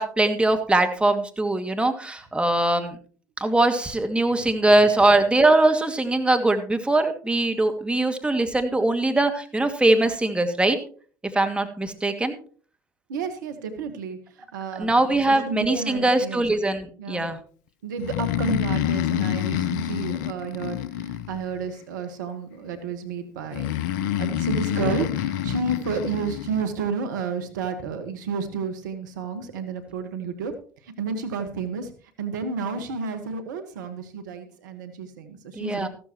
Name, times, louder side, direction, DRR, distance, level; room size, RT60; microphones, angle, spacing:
voice 1, 0.0-3.0 3.4-10.8 11.3-12.4 14.8-17.4 24.8-25.0 35.6-35.9, right 2 dB, 10° right, 6 dB, 2.2 m, -21 dB
voice 2, 13.1-14.9 15.3-16.4 17.0-17.3 17.8-30.5 30.8-31.9 32.2-35.9, right 5 dB, 80° right, 9 dB, 1.5 m, -31 dB
Breathing, 18.0-21.7 23.5-26.6, left 11 dB, 75° left, 0.8 m, -27 dB
14.5 x 13.0 x 3.0 m, 0.42 s
hypercardioid pair, 70°, 10 cm